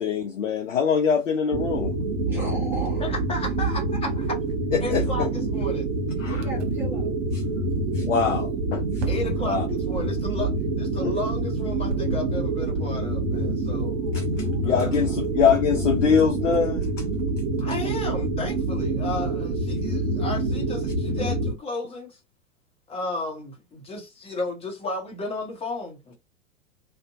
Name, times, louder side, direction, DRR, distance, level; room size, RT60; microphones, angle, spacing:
voice 1, 0.0-1.9 4.7-5.3 6.2-6.5 7.9-9.0 9.5-9.7 11.0-11.1 14.1-17.0, left 6 dB, 70° left, 0.5 m, -24 dB
sound 1, 1.5-21.5, right 3 dB, 50° right, 1.0 m, -26 dB
voice 2, 2.2-3.1 6.3-7.1 13.9-15.0, left 1 dB, 5° right, 0.3 m, -38 dB
voice 3, 3.0-4.4 4.8-5.9 9.1-14.0 14.6-15.0 17.6-22.2 22.9-26.1, left 2 dB, 15° left, 0.9 m, -33 dB
sound 2, 6.4-6.6 9.0-16.7, right 3 dB, 65° right, 0.6 m, -39 dB
2.6 x 2.1 x 2.5 m
figure-of-eight pair, 95°, 40 cm